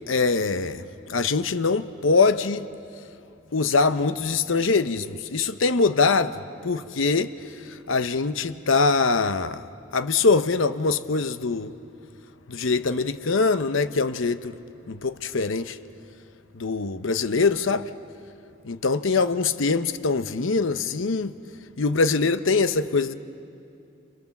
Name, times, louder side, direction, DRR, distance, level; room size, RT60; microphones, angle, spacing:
voice 1, 0.0-2.7 3.5-7.3 7.7-9.6 9.9-11.7 12.5-14.5 14.9-15.8 16.5-17.9 18.7-21.3 21.8-23.1, left 4 dB, 75° left, 0.8 m, -23 dB
30.0 x 27.5 x 7.2 m
head